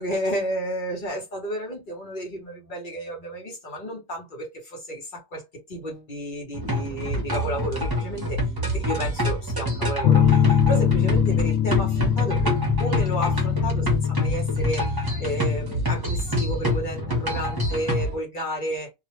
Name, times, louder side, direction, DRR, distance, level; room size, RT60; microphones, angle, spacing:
voice 1, 0.0-8.4 8.7-10.4 10.7-18.9, equal, 50° left, 1.1 m, -32 dB
sound 1, 6.5-18.2, equal, 25° right, 0.7 m, -26 dB
sound 2, 10.0-17.7, left 9 dB, 85° left, 0.9 m, -24 dB
2.4 x 2.3 x 3.0 m
omnidirectional pair, 1.1 m